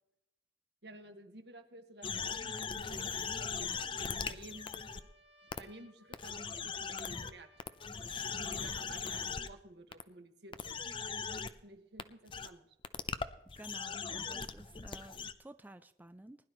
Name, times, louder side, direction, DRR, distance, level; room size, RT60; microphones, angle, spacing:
voice 1, 0.8-3.7 4.3-4.8 5.6-7.5 8.4-10.8 11.2-12.7, right 2 dB, 70° right, 6 dB, 1.6 m, -54 dB
sound 1, 2.0-5.0 5.5-5.6 6.1-7.3 7.6-9.5 9.9-10.0 10.5-11.5 12.0-12.1 12.3-12.5 12.8-15.3, left 5 dB, 30° left, 0.6 m, -39 dB
Trumpet, 4.3-9.1, left 1 dB, 90° right, 2.2 m, -66 dB
voice 2, 13.6-16.4, right 1 dB, 10° right, 11 dB, 0.4 m, -52 dB
20.0 x 11.5 x 3.1 m, 0.81 s
head